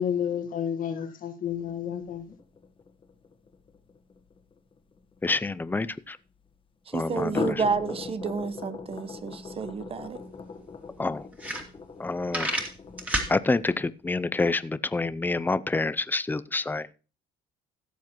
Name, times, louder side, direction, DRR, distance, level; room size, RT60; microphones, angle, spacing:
voice 1, 0.0-2.3, left 8 dB, 55° left, 1.6 m, -30 dB
sound 1, 1.5-6.0 7.1-13.9, left 5 dB, 30° left, 1.5 m, -40 dB
voice 2, 5.2-6.2 6.9-7.6 11.0-11.3 12.0-12.5 13.3-16.9, left 3 dB, 10° left, 0.5 m, -27 dB
voice 3, 6.9-10.2, right 5 dB, 35° right, 1.0 m, -30 dB
sound 2, 9.9-10.0 10.3-10.4 10.9-11.0 11.3-12.0 12.3-13.3, right 1 dB, 10° right, 2.4 m, -29 dB
16.5 x 7.2 x 3.0 m
cardioid pair, 110°, 17 cm